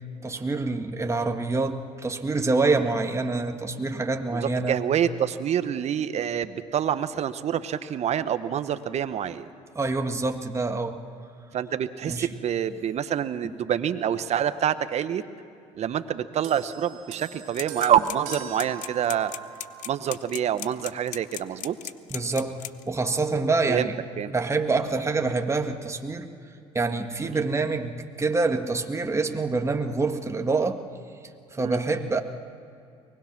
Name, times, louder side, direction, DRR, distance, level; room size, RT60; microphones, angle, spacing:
voice 1, 0.2-4.8 9.7-11.0 12.1-12.3 22.1-24.0 24.3-26.3 26.7-30.8 31.5-32.2, right 3 dB, 20° right, 5 dB, 1.7 m, -26 dB
voice 2, 4.3-9.5 11.5-15.2 15.7-19.3 19.9-21.8 23.7-23.9 24.2-24.3 27.2-27.5 31.6-31.8, right 9 dB, 50° right, 12 dB, 1.1 m, -27 dB
sound 1, 16.4-20.0 20.9-21.1, right 9 dB, 70° right, 2.7 m, -41 dB
sound 2, 17.5-22.9, left 13 dB, 65° left, 0.8 m, -36 dB
23.5 x 20.0 x 6.0 m, 2.5 s
supercardioid pair, 75°, 14 cm